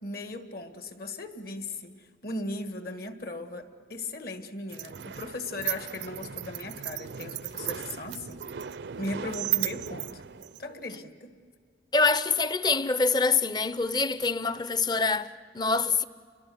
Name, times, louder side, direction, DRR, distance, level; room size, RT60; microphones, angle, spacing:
voice 1, 0.0-8.4 9.0-10.2 10.6-11.3, left 2 dB, 55° left, 1.9 m, -37 dB
sound 1, 4.7-10.9, right 11 dB, 70° right, 0.6 m, -35 dB
voice 2, 11.9-15.3 15.5-16.0, left 4 dB, 25° left, 0.6 m, -25 dB
30.0 x 22.0 x 7.8 m
head